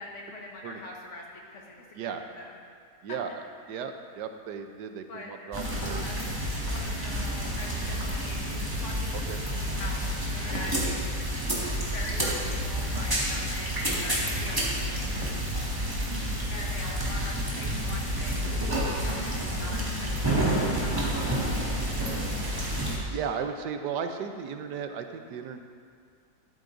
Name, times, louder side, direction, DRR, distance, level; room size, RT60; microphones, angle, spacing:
voice 1, 0.0-2.6 3.1-3.2 5.1-5.3 6.0-6.1 6.7-11.2 11.9-15.4 16.5-21.3, left 2 dB, 50° left, -2 dB, 1.7 m, -43 dB
voice 2, 3.0-3.4 3.7-6.3 9.1-9.4 23.1-25.6, right 7 dB, 85° right, 6 dB, 1.3 m, -35 dB
sound 1, 5.5-23.0, equal, 15° right, 1.8 m, -29 dB
13.0 x 12.5 x 2.6 m, 2.1 s
omnidirectional pair, 1.8 m